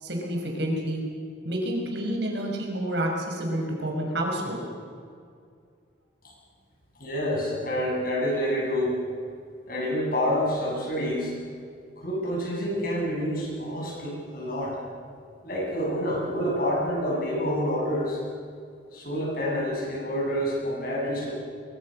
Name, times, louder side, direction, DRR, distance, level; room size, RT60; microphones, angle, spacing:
voice 1, 0.0-1.0 1.4-4.7, right 1 dB, 65° right, 0 dB, 6.0 m, -29 dB
voice 2, 7.0-8.9 9.7-11.3 12.0-14.8 15.4-18.2 18.9-21.3, equal, 50° left, -2 dB, 7.6 m, -28 dB
24.5 x 23.0 x 6.6 m, 2.3 s
head